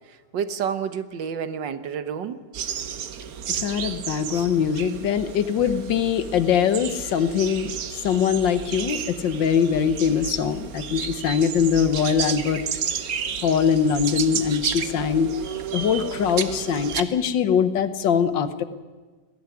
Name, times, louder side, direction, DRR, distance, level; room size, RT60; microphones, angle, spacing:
voice 1, 0.3-2.4, right 7 dB, 80° right, 12 dB, 1.8 m, -29 dB
sound 1, 2.5-17.0, right 8 dB, 55° right, 1.4 m, -32 dB
voice 2, 3.5-7.7 8.0-12.6 13.4-15.3 15.7-18.6, left 7 dB, 90° left, 12 dB, 1.8 m, -22 dB
20.5 x 15.5 x 9.8 m, 1.4 s
omnidirectional pair, 1.9 m